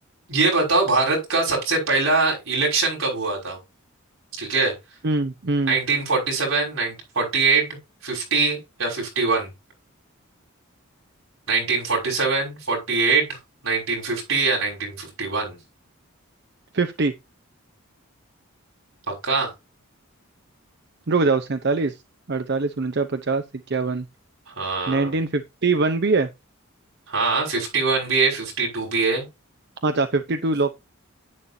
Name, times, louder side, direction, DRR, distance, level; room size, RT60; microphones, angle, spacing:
voice 1, 0.3-3.6 4.4-4.7 5.7-7.7 8.0-9.5 11.5-13.4 13.6-15.6 19.1-19.5 24.6-25.1 27.1-29.3, right 4 dB, 70° right, 5.9 m, -23 dB
voice 2, 5.0-5.8 16.7-17.1 21.1-21.9 22.3-24.0 24.9-26.3 29.8-30.7, right 3 dB, 50° right, 0.7 m, -23 dB
10.5 x 9.0 x 2.7 m
head